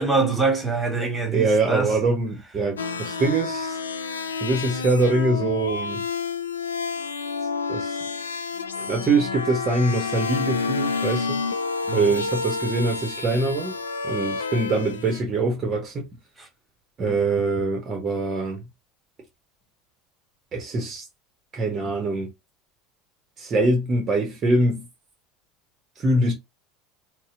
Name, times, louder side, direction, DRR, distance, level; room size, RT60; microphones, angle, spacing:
voice 1, 0.0-1.9 11.9-12.1 16.4-16.5, right 3 dB, 5° right, 1.6 m, -24 dB
voice 2, 1.3-3.8 4.4-6.0 7.7-8.0 8.9-11.4 11.9-13.7 14.0-16.1 17.0-18.6 20.5-21.1 21.5-22.3 23.4-24.8 26.0-26.3, right 2 dB, 30° right, 0.8 m, -23 dB
sound 1, 2.8-15.2, left 4 dB, 75° left, 0.4 m, -29 dB
4.1 x 2.1 x 2.5 m
figure-of-eight pair, 70°, 0 cm